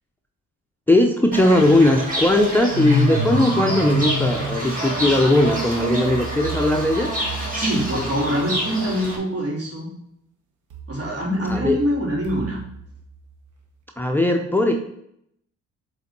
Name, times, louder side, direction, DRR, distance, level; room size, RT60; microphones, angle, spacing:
voice 1, 0.9-7.1 11.5-11.8 14.0-14.7, left 1 dB, 5° left, 4 dB, 0.6 m, -18 dB
Fowl / Bird, 1.3-9.2, equal, 30° right, 2.4 m, -26 dB
sound 1, 3.9-8.9 10.7-13.7, right 6 dB, 80° right, 1.2 m, -38 dB
voice 2, 7.5-9.9 10.9-12.6, equal, 50° right, -2 dB, 2.8 m, -24 dB
7.3 x 4.0 x 4.3 m, 0.73 s
cardioid pair, 90°, 30 cm